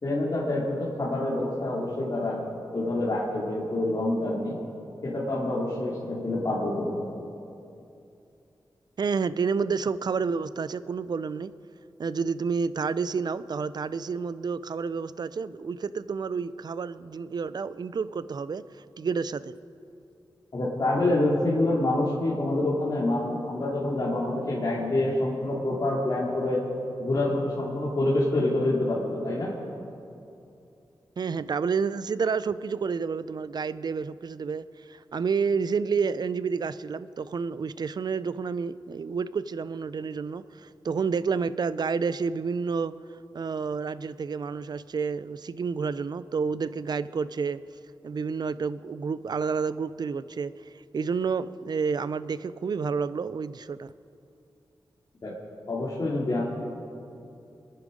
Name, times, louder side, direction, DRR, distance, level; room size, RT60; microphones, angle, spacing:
voice 1, 0.0-2.4 2.7-4.6 5.0-7.0 20.5-26.7 27.0-29.5 55.2-55.3 55.7-56.4, left 1 dB, 45° left, -6 dB, 2.6 m, -27 dB
voice 2, 9.0-11.5 12.0-18.6 19.0-19.5 31.2-42.9 43.3-47.6 48.0-53.9, right 5 dB, 55° right, 15 dB, 0.4 m, -29 dB
27.0 x 9.8 x 5.1 m, 2.7 s
wide cardioid pair, 100°, 9 cm